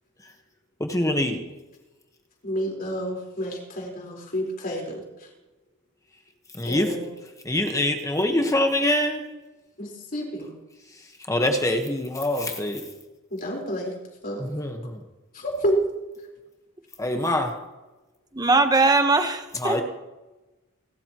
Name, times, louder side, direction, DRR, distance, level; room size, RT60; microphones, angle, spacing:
voice 1, 0.8-1.4 6.6-7.0 7.4-9.2 11.3-12.8 14.4-15.0 17.0-17.5 19.5-19.8, left 1 dB, 15° left, 4 dB, 1.3 m, -24 dB
voice 2, 2.4-5.0 6.6-7.1 9.8-10.5 13.3-13.9 14.2-14.4 15.3-15.8, equal, 45° left, -1 dB, 4.4 m, -29 dB
voice 3, 18.3-19.8, right 3 dB, 20° right, 7 dB, 1.1 m, -20 dB
29.5 x 13.0 x 3.0 m, 1.1 s
head